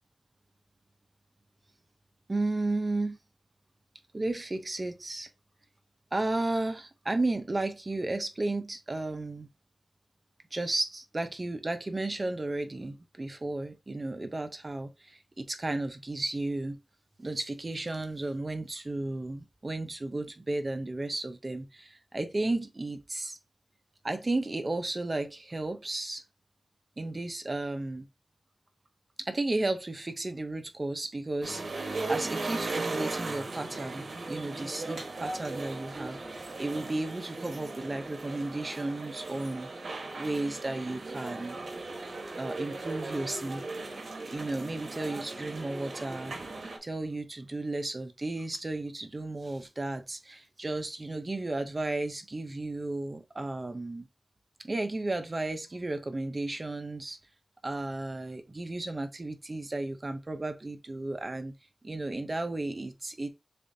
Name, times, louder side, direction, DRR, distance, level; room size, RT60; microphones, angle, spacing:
voice 1, 2.3-3.2 4.1-5.3 6.1-9.5 10.5-16.8 17.2-23.4 24.0-26.2 27.0-28.1 29.2-39.7 40.2-41.6 42.4-46.3 46.8-54.1 54.6-57.2 57.6-61.5 61.8-63.3, right 2 dB, 35° right, 0.7 m, -34 dB
sound 1, 31.4-46.8, right 2 dB, 80° right, 1.0 m, -37 dB
6.7 x 2.5 x 2.7 m
wide cardioid pair, 80°, 0 cm